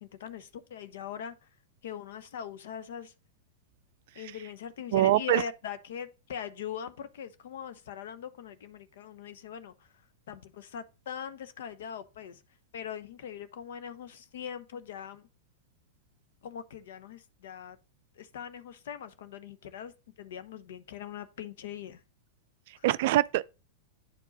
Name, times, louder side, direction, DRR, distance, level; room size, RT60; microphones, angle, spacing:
voice 1, 0.0-1.5 1.8-3.1 4.1-9.7 10.3-12.4 12.7-15.3 16.4-17.8 18.2-22.0 22.8-22.9, left 8 dB, 60° left, 0.9 m, -41 dB
voice 2, 4.9-5.4 22.7-23.4, right 14 dB, 55° right, 0.4 m, -24 dB
9.8 x 4.6 x 4.1 m
figure-of-eight pair, 95°, 0 cm